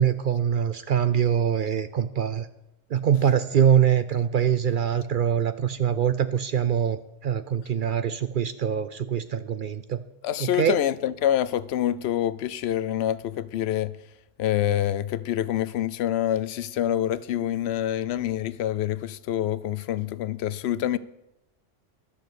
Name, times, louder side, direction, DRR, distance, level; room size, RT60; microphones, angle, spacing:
voice 1, 0.0-2.5 2.9-10.0 10.4-10.8, right 8 dB, 60° right, 0.5 m, -23 dB
voice 2, 10.2-13.9 14.4-21.0, left 11 dB, 65° left, 0.8 m, -26 dB
11.5 x 6.6 x 8.1 m
omnidirectional pair, 1.3 m